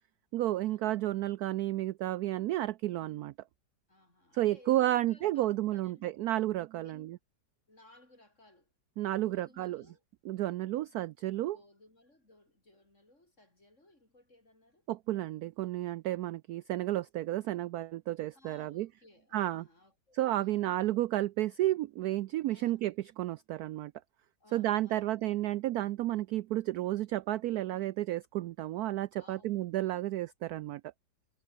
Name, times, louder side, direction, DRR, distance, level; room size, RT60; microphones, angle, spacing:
voice 1, 0.3-3.3 4.3-7.2 9.0-9.8 10.2-11.6 14.9-18.9 19.3-19.6 20.1-23.9 24.5-30.8, right 15 dB, 75° right, 0.9 m, -32 dB
voice 2, 3.9-6.1 6.8-7.2 7.7-8.7 9.0-10.0 11.5-14.9 18.3-20.8 22.5-22.8 24.4-25.6 29.1-29.7, left 1 dB, 40° left, 7.2 m, -61 dB
omnidirectional pair, 2.0 m